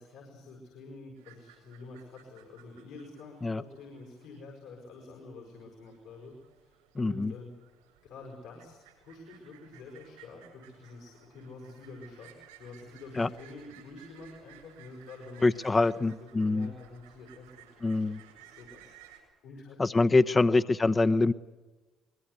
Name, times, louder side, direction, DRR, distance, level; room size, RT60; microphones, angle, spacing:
voice 1, 0.0-6.3 6.6-7.5 8.0-12.3 12.6-20.4, left 3 dB, 80° left, 0 dB, 6.2 m, -48 dB
sound 1, 1.1-19.2, right 10 dB, 90° right, 7.7 m, -58 dB
voice 2, 6.9-7.3 13.2-13.3 15.4-16.7 17.8-18.2 19.8-21.3, left 3 dB, 30° left, 11 dB, 1.0 m, -25 dB
24.0 x 21.5 x 8.4 m, 1.2 s
hypercardioid pair, 55°, 0 cm